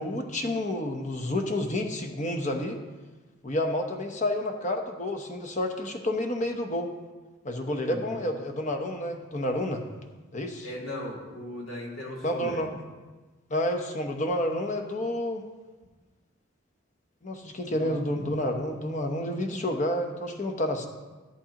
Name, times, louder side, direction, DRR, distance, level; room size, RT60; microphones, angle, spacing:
voice 1, 0.0-2.8 3.4-6.9 7.4-9.8 10.3-10.7 12.2-12.7 13.5-15.4 17.2-20.9, left 1 dB, 35° left, 4 dB, 0.9 m, -29 dB
voice 2, 7.9-8.2 10.6-12.6 17.7-18.0, left 1 dB, 90° left, -2 dB, 2.7 m, -37 dB
14.0 x 7.7 x 2.9 m, 1.3 s
head